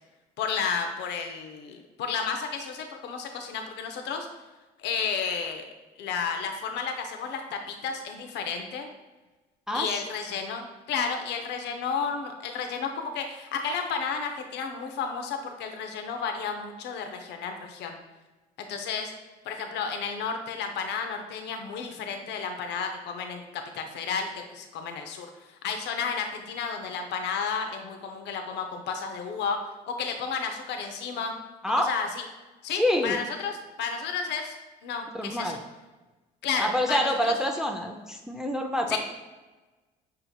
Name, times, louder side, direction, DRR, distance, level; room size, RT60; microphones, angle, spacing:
voice 1, 0.4-4.3 4.8-5.7 6.0-8.9 9.7-18.0 18.7-19.1 19.4-29.6 29.9-31.3 31.8-32.2 32.6-34.6 34.8-35.6 36.4-37.3 38.9-39.0, left 6 dB, 60° left, 4 dB, 0.7 m, -32 dB
voice 2, 9.7-10.0 31.6-31.9 32.7-33.2 35.1-35.6 36.6-39.0, left 1 dB, 5° right, 2 dB, 0.5 m, -27 dB
5.7 x 3.8 x 2.3 m, 1.2 s
hypercardioid pair, 70°, 20 cm